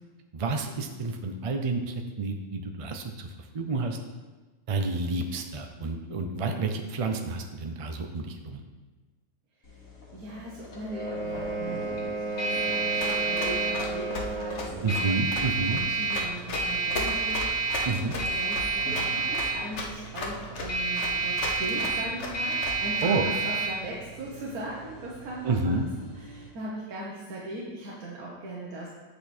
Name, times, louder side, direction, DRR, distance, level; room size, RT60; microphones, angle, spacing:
voice 1, 0.3-3.3 3.5-4.0 4.7-8.6 14.8-15.8 17.9-18.1 23.0-23.2 25.4-25.9, right 3 dB, 55° right, 5 dB, 0.3 m, -29 dB
sound 1, 9.7-26.5, right 4 dB, 70° left, 2.2 m, -31 dB
voice 2, 10.1-15.1 15.6-25.5 26.1-28.9, right 1 dB, 85° right, -4 dB, 1.6 m, -39 dB
sound 2, 10.9-14.7, right 2 dB, 20° left, 2.4 m, -33 dB
Run, 13.0-23.0, left 2 dB, 55° left, 1.4 m, -35 dB
8.0 x 6.6 x 4.3 m, 1.3 s
omnidirectional pair, 1.5 m